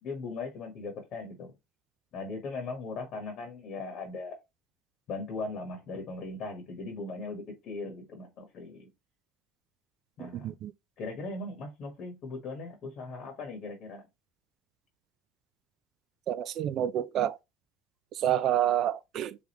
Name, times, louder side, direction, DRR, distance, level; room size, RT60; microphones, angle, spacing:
voice 1, 0.0-1.5 2.1-4.3 5.1-8.9 10.2-10.5 11.0-14.0, left 3 dB, 45° left, 1.2 m, -39 dB
voice 2, 10.2-10.7 16.3-17.4 18.1-19.4, right 11 dB, 45° right, 0.3 m, -28 dB
3.5 x 3.5 x 2.9 m
cardioid pair, 145°, 0 cm